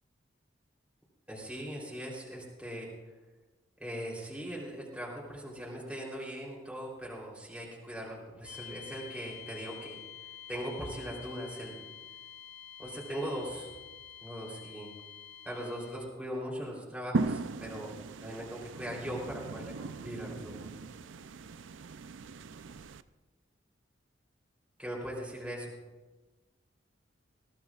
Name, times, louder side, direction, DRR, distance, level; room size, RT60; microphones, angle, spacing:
voice 1, 1.3-2.9 3.8-10.0 10.5-11.8 12.8-13.7 14.2-14.9 15.4-17.9 18.2-20.7 24.8-25.7, equal, 5° right, -4 dB, 3.4 m, -40 dB
sound 1, 8.4-16.2, left 10 dB, 55° left, 2.4 m, -49 dB
sound 2, 17.1-23.0, right 4 dB, 80° right, 0.5 m, -38 dB
21.0 x 16.5 x 2.4 m, 1.2 s
head